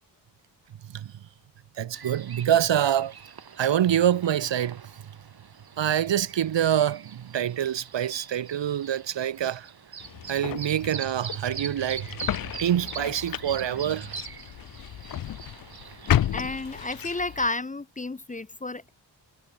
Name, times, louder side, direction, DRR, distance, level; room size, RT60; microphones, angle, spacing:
voice 1, 0.8-1.2 1.8-3.1 3.6-4.9 5.8-9.7 10.3-12.2 12.6-14.2, right 10 dB, 80° right, 1.2 m, -26 dB
sound 1, 1.9-17.5, right 6 dB, 60° right, 4.9 m, -43 dB
sound 2, 10.0-17.5, left 11 dB, 55° left, 0.5 m, -32 dB
voice 2, 16.3-18.9, left 2 dB, 20° left, 0.7 m, -31 dB
wide cardioid pair, 155°, 43 cm